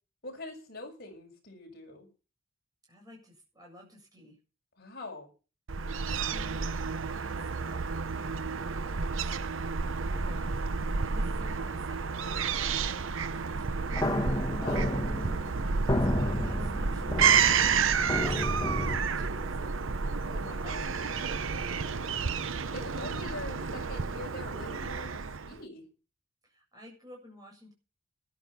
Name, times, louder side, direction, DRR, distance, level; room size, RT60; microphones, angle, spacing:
voice 1, 0.2-2.1 4.8-5.3 14.6-15.1 20.3-20.9 22.7-25.8, left 2 dB, 50° left, 2 dB, 6.7 m, -43 dB
voice 2, 2.9-4.4 5.9-8.0 9.0-9.3 9.9-10.7 11.0-14.5 15.1-15.6 16.1-20.0 20.3-22.3 26.4-27.7, left 1 dB, 20° right, -2 dB, 7.7 m, -52 dB
Fowl / Gull seagull, 5.7-25.6, right 5 dB, 70° right, 0.8 m, -30 dB
sound 1, 13.9-19.0, left 1 dB, 20° left, 1.3 m, -31 dB
14.0 x 12.0 x 5.8 m, 0.34 s
head